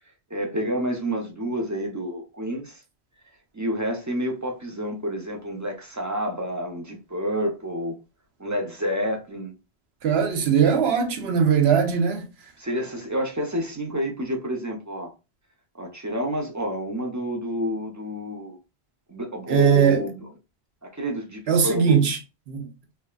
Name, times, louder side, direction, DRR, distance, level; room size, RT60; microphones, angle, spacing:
voice 1, 0.3-2.8 3.5-8.0 8.4-9.5 12.6-15.1 15.7-18.6 19.1-20.3 20.8-22.0, equal, 25° right, 0.4 m, -29 dB
voice 2, 10.0-12.2 19.5-20.0 21.5-22.2 22.5-22.7, right 7 dB, 75° right, 0.9 m, -20 dB
3.3 x 2.1 x 2.3 m
omnidirectional pair, 1.1 m